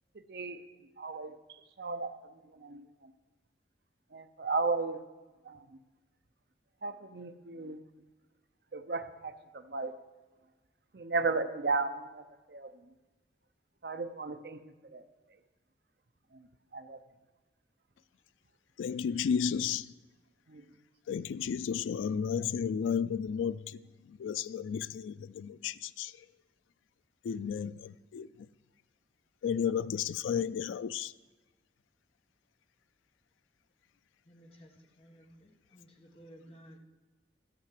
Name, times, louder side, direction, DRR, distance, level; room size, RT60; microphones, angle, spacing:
voice 1, 0.1-0.6 1.0-3.1 4.1-5.0 5.4-5.6 6.8-7.8 8.7-9.9 10.9-12.7 13.8-14.6 14.9-15.0 16.3-16.5 16.7-17.0 20.5-20.6, right 3 dB, 55° right, 0.7 m, -35 dB
voice 2, 18.8-19.9 21.1-23.8 24.2-26.1 27.2-28.3 29.4-31.1, left 7 dB, 90° left, 0.3 m, -33 dB
voice 3, 34.2-36.8, equal, 30° left, 1.4 m, -56 dB
13.5 x 5.6 x 7.6 m
head